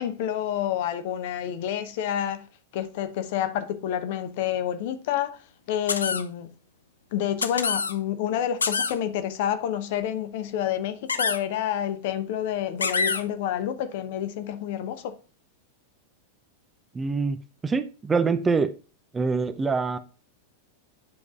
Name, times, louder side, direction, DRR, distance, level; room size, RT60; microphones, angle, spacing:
voice 1, 0.0-2.5 2.7-5.4 5.7-6.5 7.1-15.1, left 10 dB, 50° left, 0.8 m, -28 dB
sound 1, 5.9-6.2 7.4-7.9 8.6-8.9 11.1-11.4 12.8-13.2, left 5 dB, 75° left, 0.4 m, -25 dB
voice 2, 16.9-17.4 17.6-18.7 19.1-20.0, right 4 dB, 15° right, 0.5 m, -24 dB
9.7 x 4.6 x 2.5 m
figure-of-eight pair, 90°, 0 cm